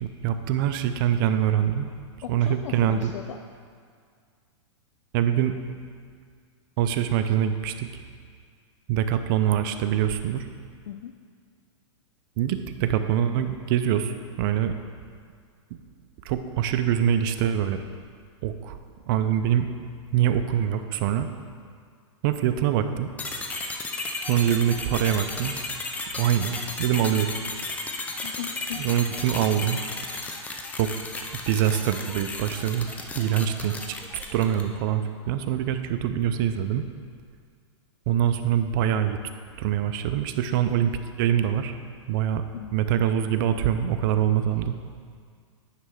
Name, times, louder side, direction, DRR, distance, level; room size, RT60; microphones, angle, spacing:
voice 1, 0.0-1.9 2.3-3.1 5.1-5.5 6.8-7.9 8.9-10.5 12.4-14.7 16.2-17.8 18.4-18.8 19.1-19.7 20.1-21.3 22.2-23.1 24.3-25.5 26.2-27.3 28.8-29.8 30.8-30.9 31.4-32.9 33.2-34.0 34.3-36.8 38.1-39.2 39.6-40.9 41.2-41.8 42.1-42.4 42.7-44.8, right 10 dB, 45° right, 9 dB, 0.5 m, -24 dB
voice 2, 2.2-3.4 10.9-11.1 20.5-20.6 28.2-28.8 42.3-42.7, left 10 dB, 75° left, 5 dB, 0.5 m, -38 dB
sound 1, 23.2-34.8, left 2 dB, 10° left, 0.5 m, -34 dB
9.7 x 3.3 x 6.2 m, 2.1 s
hypercardioid pair, 140°, 16 cm